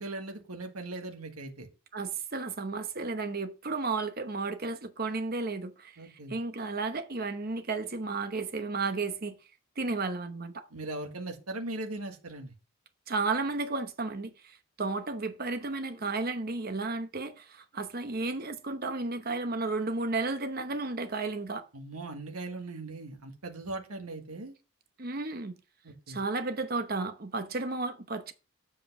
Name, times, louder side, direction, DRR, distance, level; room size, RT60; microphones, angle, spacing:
voice 1, 0.0-1.7 6.0-6.3 10.7-12.5 21.7-24.5 25.8-26.2, right 2 dB, 80° right, 1.6 m, -39 dB
voice 2, 1.9-9.3 9.8-10.7 13.1-21.7 25.0-25.5 26.1-28.3, right 3 dB, 40° right, 0.9 m, -33 dB
7.8 x 5.3 x 5.3 m
head